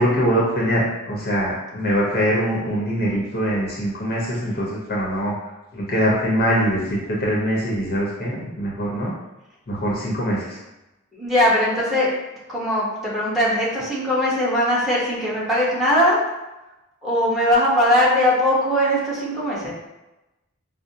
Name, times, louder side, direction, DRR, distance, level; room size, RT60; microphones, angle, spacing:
voice 1, 0.0-5.3 5.7-9.1 9.7-10.6, equal, 45° left, -4 dB, 0.8 m, -23 dB
voice 2, 11.1-12.1 12.5-16.2 17.0-19.7, left 1 dB, ahead, -7 dB, 1.0 m, -20 dB
4.9 x 2.0 x 2.8 m, 1.0 s
head